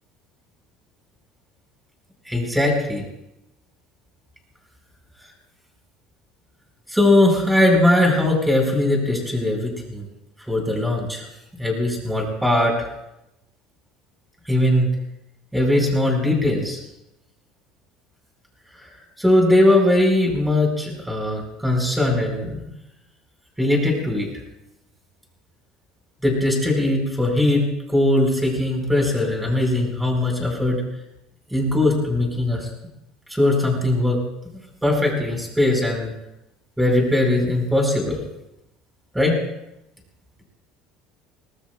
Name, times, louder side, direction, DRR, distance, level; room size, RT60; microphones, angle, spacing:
voice 1, 2.2-3.0 6.9-10.0 10.5-11.3 11.6-12.9 14.5-14.9 15.5-16.8 18.8-18.9 19.2-22.7 23.6-24.3 26.2-27.6 27.9-30.8 31.5-32.7 33.3-34.2 34.8-36.1 36.8-38.2 39.1-39.4, left 1 dB, 5° right, 1 dB, 4.6 m, -20 dB
24.5 x 19.5 x 2.3 m, 0.88 s
cardioid pair, 140°, 0 cm